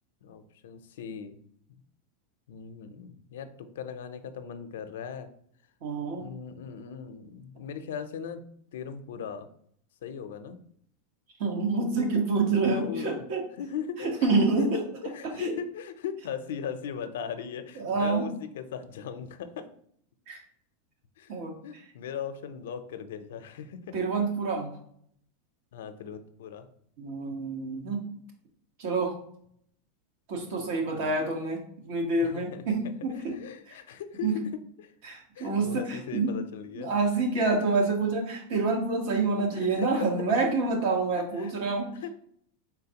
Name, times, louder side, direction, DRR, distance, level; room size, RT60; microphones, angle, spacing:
voice 1, 0.2-1.4 1.7-1.8 2.5-5.3 6.0-8.4 8.7-9.5 10.0-10.6 12.6-13.2 13.6-14.7 15.0-19.7 21.2-21.3 21.6-24.0 25.7-26.7 30.8-31.1 32.2-32.6 33.1-34.9 35.4-37.2 39.5-40.0 41.1-41.6 42.0-42.1, left 7 dB, 80° left, 9 dB, 0.5 m, -38 dB
voice 2, 5.8-6.3 11.4-13.4 14.0-14.8 15.4-15.5 17.8-18.3 20.3-20.4 21.3-21.8 23.9-24.7 27.0-28.0 28.8-29.2 30.3-33.4 33.7-33.8 34.2-34.4 35.0-36.3 36.7-41.9, right 3 dB, 60° right, 2 dB, 1.2 m, -27 dB
4.5 x 3.7 x 2.9 m, 0.66 s
supercardioid pair, 145°, 0 cm